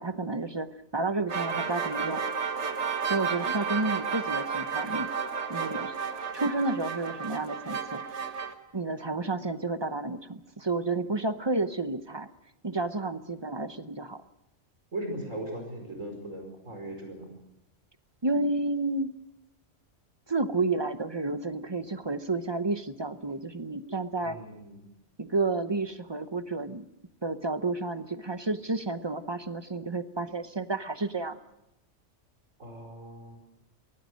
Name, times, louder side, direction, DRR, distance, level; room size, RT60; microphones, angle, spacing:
voice 1, 0.0-2.2 3.0-5.1 5.5-5.9 6.3-8.0 8.7-12.3 12.6-14.2 18.2-19.1 20.3-24.4 25.2-26.9 27.2-31.4, right 3 dB, 25° right, 11 dB, 0.7 m, -31 dB
sound 1, 1.3-8.5, right 6 dB, 65° right, 1.7 m, -32 dB
voice 2, 14.9-17.3 24.2-24.8 32.6-33.4, right 1 dB, 85° right, 3 dB, 5.5 m, -38 dB
23.0 x 17.5 x 6.4 m, 0.87 s
omnidirectional pair, 1.3 m